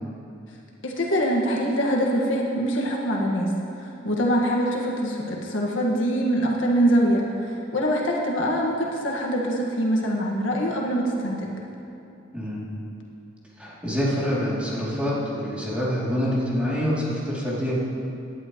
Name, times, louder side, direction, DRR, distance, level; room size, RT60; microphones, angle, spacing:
voice 1, 0.8-3.5 3.8-11.5, equal, 80° left, -2 dB, 1.7 m, -24 dB
voice 2, 12.3-12.6 13.6-17.8, equal, 5° right, -8 dB, 2.9 m, -26 dB
18.0 x 11.0 x 3.1 m, 2.7 s
head